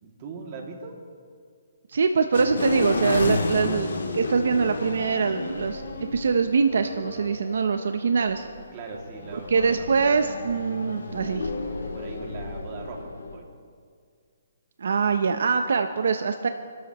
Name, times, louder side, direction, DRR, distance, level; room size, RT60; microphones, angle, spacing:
voice 1, 0.0-0.9 8.7-9.9 11.9-13.5, right 4 dB, 35° right, 0 dB, 2.4 m, -40 dB
voice 2, 1.9-3.9 4.1-8.4 9.5-11.5 14.8-16.5, right 5 dB, 75° right, 8 dB, 0.8 m, -23 dB
sound 1, 2.3-13.3, left 3 dB, 80° left, 3.0 m, -32 dB
27.5 x 13.0 x 3.1 m, 2.1 s
hypercardioid pair, 155°, 0 cm